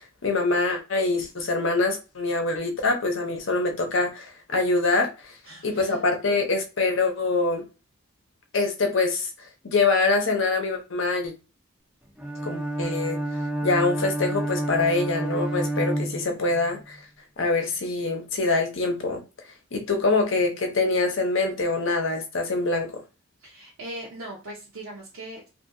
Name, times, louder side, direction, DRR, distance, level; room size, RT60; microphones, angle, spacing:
voice 1, 0.0-5.3 5.6-7.6 8.5-9.3 9.6-11.3 12.4-13.2 13.6-17.0 17.4-19.2 19.7-22.9, left 3 dB, 60° left, 0.7 m, -24 dB
voice 2, 5.5-6.0 23.4-25.5, right 1 dB, 85° right, 0.7 m, -40 dB
Bowed string instrument, 12.2-16.8, right 1 dB, 5° right, 0.4 m, -29 dB
2.7 x 2.6 x 2.5 m
head